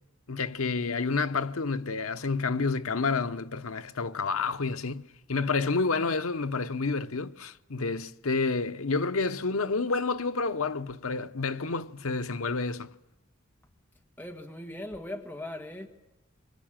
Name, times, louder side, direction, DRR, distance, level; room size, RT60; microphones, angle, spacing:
voice 1, 0.3-5.0 5.3-12.9, left 4 dB, 90° left, 0.9 m, -29 dB
voice 2, 14.2-15.9, left 1 dB, 10° left, 1.8 m, -39 dB
24.0 x 23.5 x 9.0 m
head